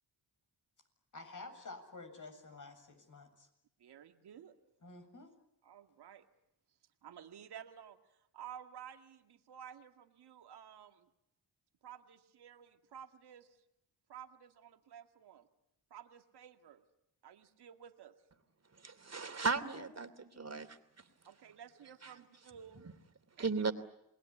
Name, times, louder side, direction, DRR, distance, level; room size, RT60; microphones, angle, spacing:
voice 1, 1.1-3.5 4.8-5.3, left 3 dB, 50° left, 6 dB, 7.7 m, -50 dB
voice 2, 3.8-4.6 5.6-6.2 7.0-11.1 11.8-13.6 14.1-15.5 15.9-16.8 17.2-18.2 21.2-22.9 23.4-23.6, right 9 dB, 80° right, 6 dB, 2.1 m, -53 dB
voice 3, 18.8-20.8 23.4-23.7, right 4 dB, 40° right, 9 dB, 3.0 m, -35 dB
28.5 x 20.0 x 9.8 m, 0.82 s
cardioid pair, 60°, 39 cm